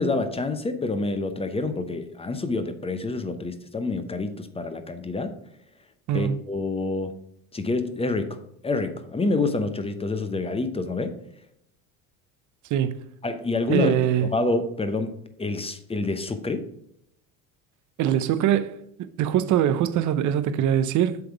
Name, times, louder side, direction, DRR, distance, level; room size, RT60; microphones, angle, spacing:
voice 1, 0.0-5.3 6.1-7.1 7.5-11.2 13.2-14.0 14.2-16.7, left 3 dB, 15° left, 0.8 m, -27 dB
voice 2, 13.7-14.3 18.0-21.2, right 10 dB, 45° right, 0.7 m, -23 dB
7.9 x 3.5 x 4.6 m
supercardioid pair, 90°, 43 cm